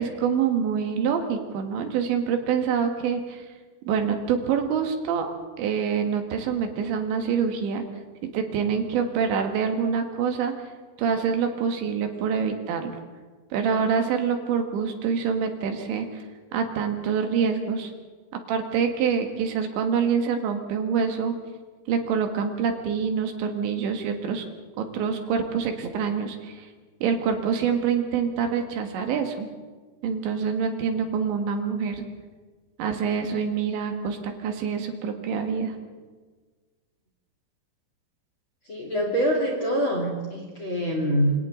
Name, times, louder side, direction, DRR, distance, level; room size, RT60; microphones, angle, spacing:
voice 1, 0.0-3.5 3.9-7.8 8.3-10.5 11.0-12.9 13.5-16.3 16.5-17.9 18.5-21.4 21.9-24.4 24.8-26.7 27.0-29.5 30.0-32.0 32.8-35.8, right 6 dB, 70° right, 5 dB, 3.6 m, -26 dB
voice 2, 38.7-41.3, equal, 35° left, 0 dB, 2.2 m, -25 dB
27.5 x 25.5 x 3.8 m, 1.4 s
omnidirectional pair, 5.7 m